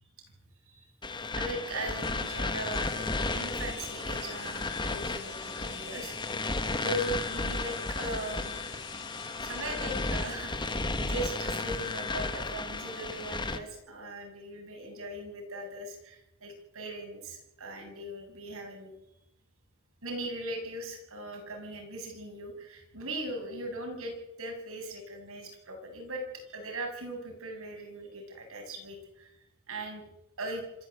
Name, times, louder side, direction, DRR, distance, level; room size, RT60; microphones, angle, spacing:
sound 1, 1.0-13.6, left 3 dB, 20° left, 1.6 m, -34 dB
voice 1, 1.3-6.4 6.8-8.5 9.4-18.9 20.0-29.3 29.7-30.0 30.4-30.6, right 1 dB, 65° right, 3 dB, 7.2 m, -39 dB
sound 2, 2.0-12.4, left 7 dB, 55° left, 4.4 m, -48 dB
25.5 x 14.0 x 8.1 m, 0.85 s
head